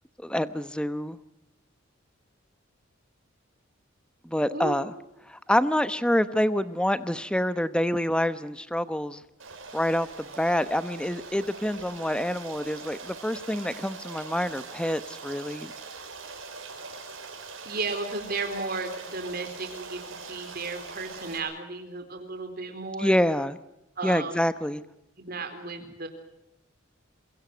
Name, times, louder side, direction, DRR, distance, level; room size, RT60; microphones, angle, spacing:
voice 1, 0.2-1.2 4.2-4.9 5.3-9.2 9.7-15.7 23.0-23.6 24.0-24.8, equal, 5° left, 13 dB, 0.9 m, -27 dB
voice 2, 4.5-4.8 17.6-23.2 24.0-24.3 25.2-26.1, right 3 dB, 50° right, 6 dB, 4.0 m, -34 dB
Stream, 9.4-21.4, right 4 dB, 85° right, 6.0 m, -42 dB
27.0 x 23.0 x 6.3 m, 0.87 s
head